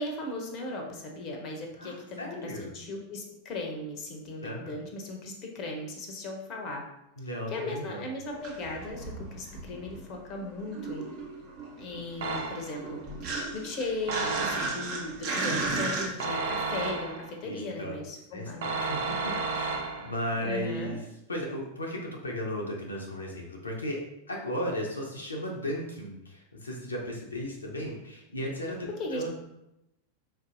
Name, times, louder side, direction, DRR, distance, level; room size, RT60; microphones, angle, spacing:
voice 1, 0.0-6.8 7.5-11.1 11.8-18.7 20.4-21.0 29.0-29.3, left 2 dB, 35° left, 2 dB, 0.6 m, -37 dB
voice 2, 1.8-2.7 4.4-4.7 7.2-8.1 17.4-17.9 18.3-18.5 18.8-24.0 24.3-29.3, equal, 75° left, -1 dB, 0.5 m, -35 dB
sound 1, 8.2-10.2 10.4-16.1, right 3 dB, 45° right, 0.8 m, -34 dB
sound 2, 12.2-12.9 14.1-15.0 16.2-17.4 18.6-20.3, right 4 dB, 60° right, 0.5 m, -32 dB
4.1 x 2.6 x 2.5 m, 0.86 s
figure-of-eight pair, 90°, 0 cm